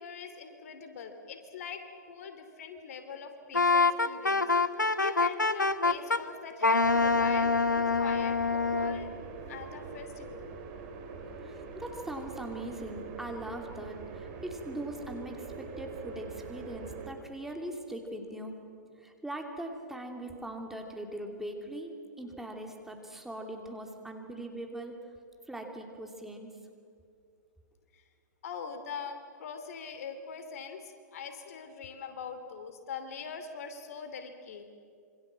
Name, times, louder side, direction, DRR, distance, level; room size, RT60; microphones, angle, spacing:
voice 1, 0.0-4.4 5.0-9.1 9.5-10.5 27.9-28.0 28.4-34.7, left 6 dB, 55° left, 8 dB, 2.8 m, -42 dB
Wind instrument woodwind instrument, 3.5-6.2 6.6-9.0, left 4 dB, 90° left, 1.1 m, -25 dB
sound 1, 6.8-17.1, right 4 dB, 35° right, 3.7 m, -44 dB
voice 2, 11.4-18.5 19.0-24.9 25.5-26.5, right 1 dB, 5° right, 2 dB, 2.8 m, -41 dB
26.5 x 25.0 x 7.5 m, 2.4 s
figure-of-eight pair, 115°, 10 cm